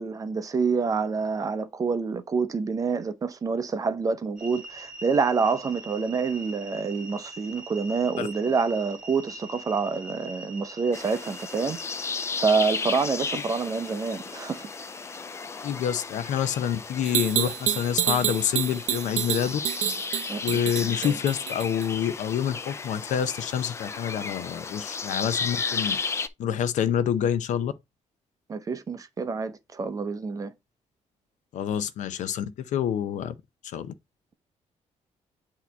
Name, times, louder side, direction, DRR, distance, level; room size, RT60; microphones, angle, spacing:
voice 1, 0.0-11.8 12.4-14.7 20.3-20.6 21.0-21.1 28.5-30.5, right 5 dB, 30° right, 0.6 m, -27 dB
sound 1, 4.4-18.5, right 2 dB, 5° right, 1.5 m, -45 dB
sound 2, 10.9-26.3, left 5 dB, 20° left, 0.4 m, -34 dB
voice 2, 15.6-19.6 20.4-26.0 26.4-27.7 31.5-33.3 33.6-33.9, left 9 dB, 85° left, 0.6 m, -27 dB
sound 3, 17.0-21.9, right 11 dB, 85° right, 0.5 m, -28 dB
8.3 x 2.9 x 4.5 m
wide cardioid pair, 175°, 12 cm